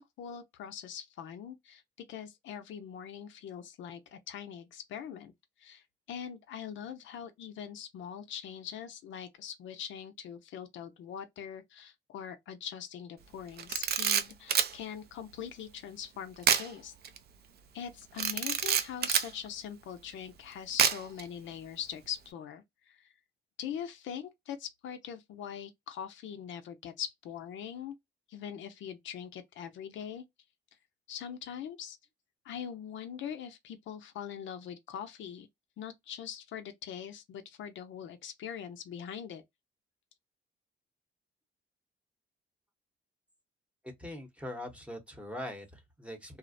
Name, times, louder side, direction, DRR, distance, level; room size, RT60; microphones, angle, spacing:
voice 1, 0.0-1.8 2.1-5.3 5.6-5.8 6.1-16.9 17.7-23.1 23.6-27.9 28.3-30.2 31.1-32.0 32.4-35.5 35.8-39.4, left 8 dB, 70° left, 0.5 m, -42 dB
Camera, 13.6-14.7 16.4-16.7 17.0-17.2 18.2-19.3 20.8-21.2, right 8 dB, 55° right, 0.4 m, -27 dB
voice 2, 43.8-46.4, left 1 dB, 5° right, 0.8 m, -42 dB
2.4 x 2.0 x 2.5 m
cardioid pair, 90°, 20 cm